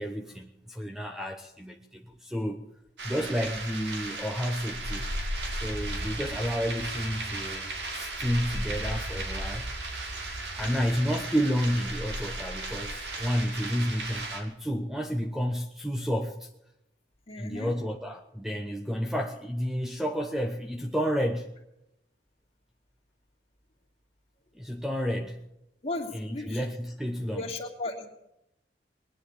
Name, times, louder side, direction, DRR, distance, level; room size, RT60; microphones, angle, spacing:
voice 1, 0.0-2.6 3.0-5.1 5.5-9.7 10.5-16.5 17.4-21.6 24.5-25.5 26.1-27.4, equal, ahead, 0.9 m, -31 dB
sound 1, 3.0-14.4, right 2 dB, 80° right, 2.7 m, -35 dB
voice 2, 17.3-17.7 25.8-26.6 27.3-28.1, left 2 dB, 35° left, 2.6 m, -35 dB
20.5 x 10.0 x 7.1 m
head